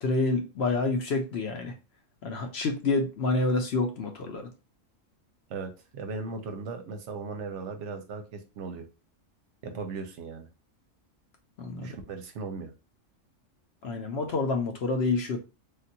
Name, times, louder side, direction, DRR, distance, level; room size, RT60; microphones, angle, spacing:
voice 1, 0.0-1.7 2.2-4.5 11.6-12.0 13.8-15.4, left 3 dB, 60° left, 0.7 m, -28 dB
voice 2, 5.5-8.8 9.6-10.5 11.8-12.7, right 4 dB, 70° right, 0.8 m, -37 dB
3.4 x 2.4 x 2.7 m
omnidirectional pair, 1.4 m